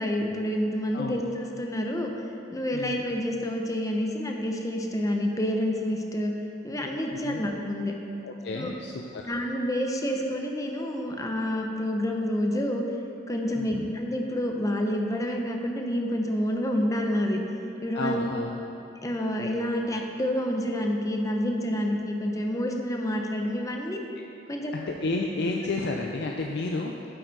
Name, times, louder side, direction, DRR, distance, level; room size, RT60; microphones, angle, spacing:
voice 1, 0.0-2.1 2.5-6.3 6.6-7.9 8.5-8.7 9.3-12.8 13.3-17.4 17.8-18.3 19.0-24.0 24.5-24.7, equal, 20° left, 2 dB, 0.7 m, -28 dB
voice 2, 2.7-3.1 7.1-7.4 8.2-9.2 13.6-13.9 17.9-18.6 21.7-21.9 23.9-24.0 24.7-26.9, left 3 dB, 65° left, 1 dB, 0.5 m, -31 dB
9.0 x 7.7 x 4.0 m, 2.9 s
head